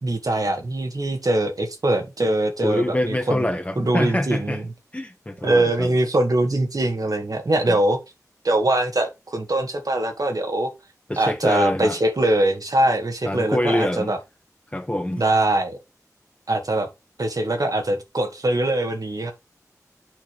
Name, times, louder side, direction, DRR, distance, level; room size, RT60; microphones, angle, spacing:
voice 1, 0.0-3.5 3.8-4.6 5.4-8.0 8.4-10.7 11.2-14.2 15.2-15.8 16.5-16.9 17.2-19.3, right 1 dB, 70° right, 2.1 m, -22 dB
voice 2, 2.6-4.6 4.9-5.9 7.7-7.8 11.1-12.0 13.3-14.1 14.7-15.2, left 1 dB, 20° left, 1.6 m, -25 dB
8.6 x 5.1 x 4.8 m
wide cardioid pair, 45°, 6 cm